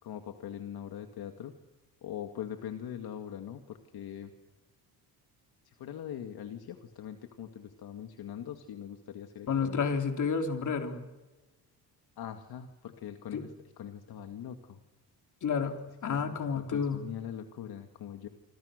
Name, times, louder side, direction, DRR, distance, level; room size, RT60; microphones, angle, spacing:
voice 1, 0.0-1.5 2.0-4.3 5.6-9.8 12.2-14.8 16.1-16.4 16.7-18.3, left 9 dB, 60° left, 6 dB, 2.2 m, -42 dB
voice 2, 9.5-11.0 13.3-13.4 15.4-17.0, left 6 dB, 45° left, 5 dB, 3.9 m, -30 dB
28.0 x 26.0 x 6.7 m, 1.1 s
cardioid pair, 130°, 41 cm